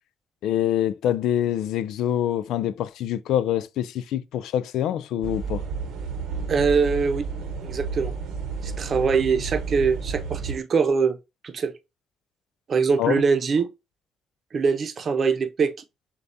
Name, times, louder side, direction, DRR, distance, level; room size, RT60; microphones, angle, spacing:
voice 1, 0.4-5.6 13.0-13.2, left 11 dB, 85° left, 0.3 m, -25 dB
sound 1, 5.2-10.6, right 5 dB, 90° right, 0.8 m, -31 dB
voice 2, 6.5-7.2 7.6-8.1 8.6-11.2 11.4-11.7 12.7-13.7 14.5-15.7, right 5 dB, 50° right, 0.7 m, -23 dB
6.8 x 2.3 x 2.7 m
cardioid pair, 90°, 0 cm